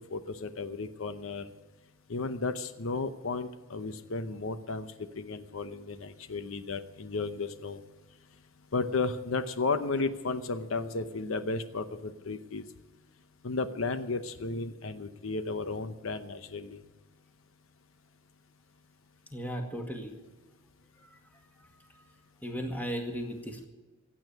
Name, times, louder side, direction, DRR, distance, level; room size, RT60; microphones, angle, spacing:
voice 1, 0.0-1.5 2.1-7.8 8.7-12.6 13.4-16.8, left 3 dB, 75° left, 11 dB, 0.8 m, -34 dB
voice 2, 19.3-20.1 21.0-21.2 22.4-23.7, equal, 10° left, 3 dB, 2.0 m, -36 dB
15.5 x 8.7 x 9.4 m, 1.2 s
head